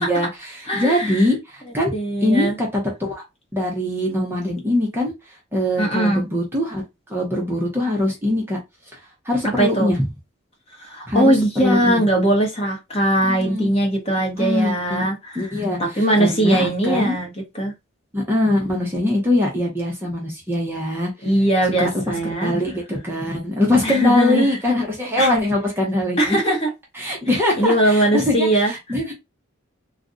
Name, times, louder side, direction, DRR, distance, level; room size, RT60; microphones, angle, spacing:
voice 1, 0.0-1.9 2.2-3.2 3.5-5.1 5.5-6.8 7.1-8.6 9.2-10.1 11.1-12.0 13.2-13.7 14.4-15.0 15.3-17.2 18.1-21.1 21.8-26.5 26.9-29.1, left 1 dB, 10° right, 0.8 m, -22 dB
voice 2, 0.7-1.3 1.9-2.5 5.8-6.3 9.6-9.9 10.8-15.5 15.8-17.7 21.2-22.5 23.8-24.6 25.2-25.3 26.2-26.7 27.6-28.7, right 1 dB, 30° left, 0.9 m, -20 dB
2.5 x 2.2 x 3.8 m
head